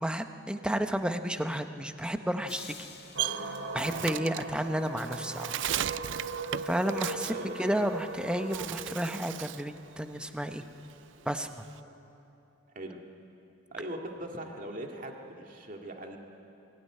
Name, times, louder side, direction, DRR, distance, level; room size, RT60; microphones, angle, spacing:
voice 1, 0.0-2.9 3.7-5.6 6.6-7.3 7.6-10.6 11.3-11.6, equal, 5° right, 7 dB, 0.8 m, -32 dB
sound 1, 2.5-4.7, left 7 dB, 55° left, 1.6 m, -50 dB
Bird, 2.6-8.1 8.4-9.7 10.1-11.8, right 11 dB, 65° right, 0.4 m, -37 dB
sound 2, 3.1-12.0, right 2 dB, 85° right, 2.4 m, -40 dB
voice 2, 7.3-7.6 12.7-13.0 13.7-16.2, right 1 dB, 45° right, 2 dB, 2.2 m, -40 dB
23.0 x 16.5 x 9.8 m, 2.8 s
head